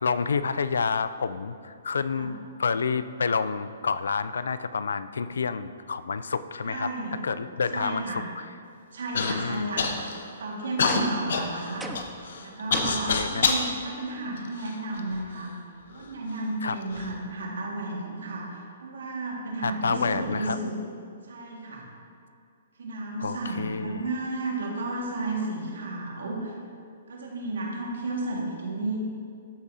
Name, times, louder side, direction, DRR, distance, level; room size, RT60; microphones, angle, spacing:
voice 1, 0.0-6.9 7.2-8.0 9.2-9.7 13.1-13.5 16.6-16.8 19.6-20.6 23.2-24.0, left 5 dB, 85° left, 13 dB, 0.3 m, -29 dB
voice 2, 6.6-7.2 7.7-8.3 8.9-9.9 10.4-11.9 12.4-15.6 15.9-20.7 21.2-21.9 22.8-26.6 27.1-29.0, right 2 dB, 85° right, -2 dB, 1.8 m, -33 dB
Human voice / Cough, 9.2-9.3 9.8-10.3 10.8-13.7 14.4-15.2 16.0-16.1 16.8-17.1, left 5 dB, 70° left, 0.7 m, -27 dB
sound 1, 10.9-11.3 11.8-12.2 12.7-13.2, right 3 dB, 5° right, 0.4 m, -38 dB
13.0 x 4.8 x 2.7 m, 2.4 s
hypercardioid pair, 150°, 0 cm